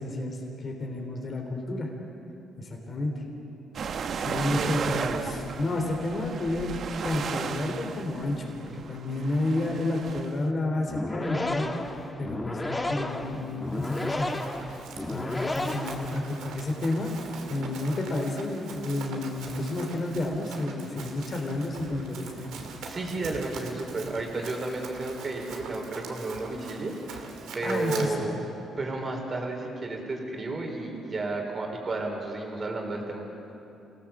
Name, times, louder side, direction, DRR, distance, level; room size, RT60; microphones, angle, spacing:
voice 1, 0.0-1.9 2.6-3.2 4.1-6.7 7.0-8.5 8.9-11.8 12.2-14.4 15.1-17.1 17.5-22.4 27.6-28.2, left 2 dB, 40° left, 1 dB, 3.5 m, -30 dB
sound 1, 3.7-10.4, right 6 dB, 60° right, 1.1 m, -35 dB
voice 2, 4.5-5.3 22.9-28.4 28.8-33.2, right 2 dB, 35° right, 2 dB, 4.3 m, -32 dB
sound 2, 10.8-16.5, left 2 dB, 15° left, 1.6 m, -33 dB
Run, 13.5-28.0, right 5 dB, 85° right, 2.8 m, -43 dB
27.0 x 17.5 x 7.4 m, 3.0 s
cardioid pair, 90°, 0 cm